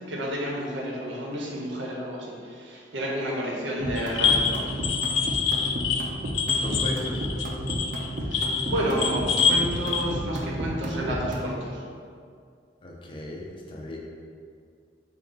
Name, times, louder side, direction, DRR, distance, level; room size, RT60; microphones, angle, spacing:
voice 1, 0.1-4.9 8.2-11.8, equal, 80° right, -3 dB, 0.7 m, -31 dB
sound 1, 3.8-11.5, equal, 45° right, 0.4 m, -32 dB
sound 2, 4.0-10.0, left 6 dB, 90° left, 0.3 m, -25 dB
voice 2, 6.6-7.3 12.8-14.0, left 1 dB, 25° left, -2 dB, 0.4 m, -36 dB
3.6 x 2.3 x 3.8 m, 2.2 s
head